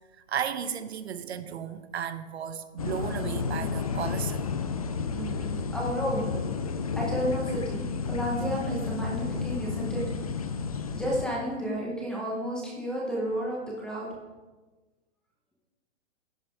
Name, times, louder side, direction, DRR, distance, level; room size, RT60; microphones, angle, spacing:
voice 1, 0.3-4.5, right 8 dB, 60° right, 11 dB, 0.9 m, -34 dB
sound 1, 2.8-11.3, left 5 dB, 30° left, 0.4 m, -31 dB
voice 2, 5.0-10.0 10.9-14.1, equal, ahead, -4 dB, 0.8 m, -32 dB
14.0 x 10.5 x 3.5 m, 1.2 s
hypercardioid pair, 165°, 37 cm